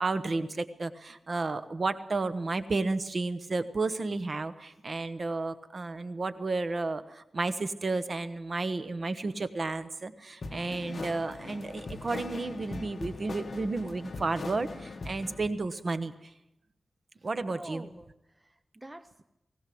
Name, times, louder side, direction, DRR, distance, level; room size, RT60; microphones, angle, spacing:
voice 1, 0.0-16.3 17.2-17.9, right 3 dB, 45° right, 11 dB, 1.2 m, -32 dB
sound 1, 10.4-15.5, left 3 dB, 50° left, 1.5 m, -41 dB
voice 2, 17.4-19.2, right 1 dB, 15° right, 10 dB, 0.7 m, -47 dB
20.0 x 17.0 x 7.8 m, 0.87 s
wide cardioid pair, 115°, 0 cm